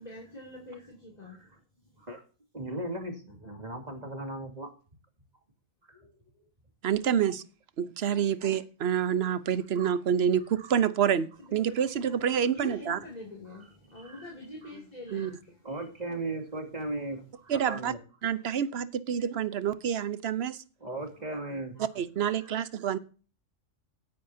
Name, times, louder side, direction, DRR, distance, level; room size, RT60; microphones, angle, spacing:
voice 1, 0.0-1.6 2.0-2.1 3.3-3.6 8.1-8.4 11.7-12.2 12.5-15.6 17.1-17.2 18.5-18.6 21.2-21.8, left 2 dB, 30° left, -2 dB, 2.8 m, -46 dB
voice 2, 2.5-4.7 5.9-6.1 12.6-12.7 13.5-13.7 13.9-14.3 14.6-14.7 15.1-15.3 15.6-18.0 20.8-21.7 22.4-22.6, right 2 dB, 35° right, 3 dB, 2.7 m, -37 dB
voice 3, 6.8-7.4 7.8-13.0 15.1-15.3 17.5-17.9 18.2-20.6 21.8-23.0, right 8 dB, 60° right, 15 dB, 1.0 m, -28 dB
17.5 x 9.3 x 2.7 m, 0.37 s
omnidirectional pair, 1.3 m